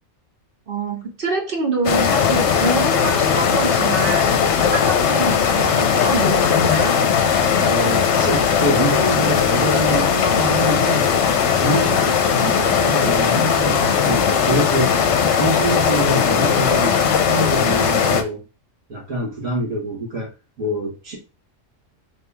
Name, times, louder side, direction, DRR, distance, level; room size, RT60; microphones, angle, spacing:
voice 1, 0.7-4.3 4.7-7.0, right 2 dB, 45° right, 3 dB, 0.9 m, -25 dB
sound 1, 1.8-18.2, left 7 dB, 65° left, 0.9 m, -18 dB
voice 2, 7.6-11.2 11.6-15.0 15.3-18.4 18.9-20.3 20.6-21.2, right 2 dB, 90° right, -4 dB, 2.3 m, -25 dB
4.3 x 2.9 x 3.4 m, 0.30 s
omnidirectional pair, 1.4 m